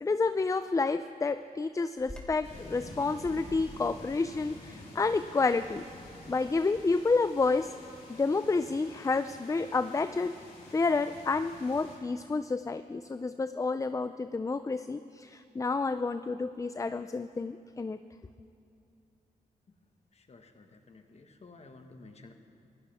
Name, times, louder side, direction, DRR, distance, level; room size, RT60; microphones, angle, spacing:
voice 1, 0.0-5.8 6.3-7.7 8.1-10.3 10.7-18.0, left 3 dB, 20° left, 11 dB, 0.4 m, -29 dB
Bird vocalization bird call bird song, 2.0-7.7, left 1 dB, 5° left, 2.4 m, -51 dB
sound 1, 2.4-12.0, left 2 dB, 90° left, 3.7 m, -50 dB
voice 2, 20.1-22.3, left 3 dB, 45° left, 5 dB, 1.6 m, -53 dB
26.0 x 15.0 x 3.6 m, 2.7 s
cardioid pair, 70°, 15 cm